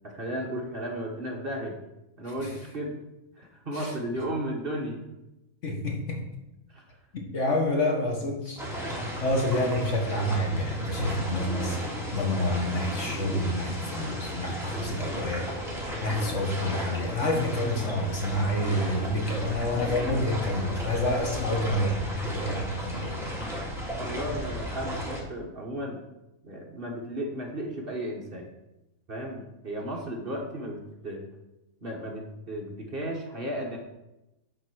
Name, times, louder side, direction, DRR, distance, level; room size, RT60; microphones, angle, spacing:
voice 1, 0.0-1.8 2.2-3.0 3.4-5.1 6.7-6.8 24.0-26.0 26.4-28.5 29.1-31.3 31.8-33.8, right 1 dB, 40° right, 0 dB, 1.4 m, -34 dB
voice 2, 5.6-6.2 7.3-23.3, left 1 dB, 60° left, 1 dB, 1.8 m, -28 dB
sound 1, 8.6-25.2, equal, ahead, 2.0 m, -34 dB
9.3 x 4.4 x 6.1 m, 0.95 s
omnidirectional pair, 1.5 m